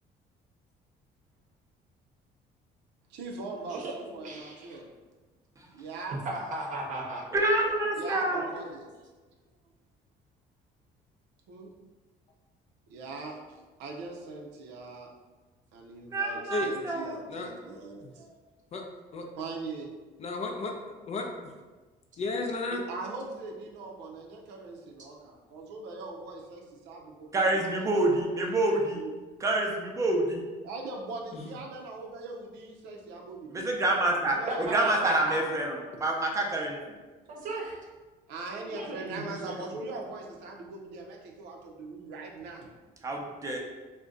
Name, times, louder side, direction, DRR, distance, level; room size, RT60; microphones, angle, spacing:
voice 1, 3.1-4.9 5.7-6.3 7.9-8.9 11.5-11.7 12.9-13.4 13.8-15.1 15.7-18.4 19.4-19.9 22.7-29.1 30.6-33.7 34.3-35.5 38.3-42.7, right 3 dB, 85° right, 0 dB, 0.5 m, -41 dB
voice 2, 3.7-4.8 6.2-7.2 34.5-35.4 37.3-37.8 38.6-39.8, right 2 dB, 50° right, 0 dB, 0.7 m, -36 dB
voice 3, 7.3-8.5 16.1-17.1 27.3-29.0 29.4-30.4 33.5-36.8 43.0-43.6, right 2 dB, 20° right, 0 dB, 0.5 m, -27 dB
voice 4, 20.2-20.8 21.1-21.5 22.2-22.8 31.3-31.5, left 2 dB, 40° left, 3 dB, 0.4 m, -33 dB
2.5 x 2.1 x 3.6 m, 1.3 s
cardioid pair, 110°, 17 cm